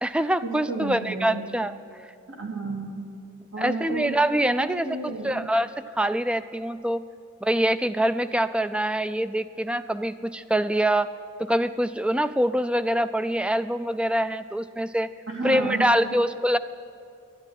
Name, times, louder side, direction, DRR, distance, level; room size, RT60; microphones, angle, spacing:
voice 1, 0.0-1.7 3.6-4.9 5.2-5.7 6.0-7.0 7.4-11.1 11.4-15.1 15.4-16.6, right 1 dB, 5° right, 13 dB, 0.3 m, -24 dB
voice 2, 0.7-1.5 2.4-3.1 3.5-4.1 4.6-5.4 15.3-15.9, right 3 dB, 65° right, -1 dB, 2.6 m, -32 dB
11.5 x 11.5 x 9.7 m, 2.4 s
head